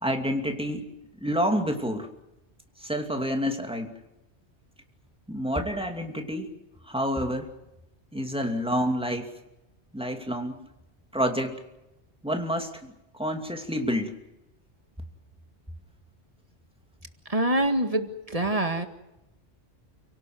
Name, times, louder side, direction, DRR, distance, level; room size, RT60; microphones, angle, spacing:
voice 1, 0.0-0.9 1.2-2.1 2.8-3.9 5.3-6.5 6.8-7.5 8.1-9.3 9.9-10.6 11.1-11.6 12.2-14.1, equal, 5° right, 4 dB, 2.6 m, -28 dB
voice 2, 17.3-18.9, right 1 dB, 30° right, 7 dB, 2.0 m, -25 dB
30.0 x 18.0 x 7.9 m, 0.93 s
omnidirectional pair, 1.2 m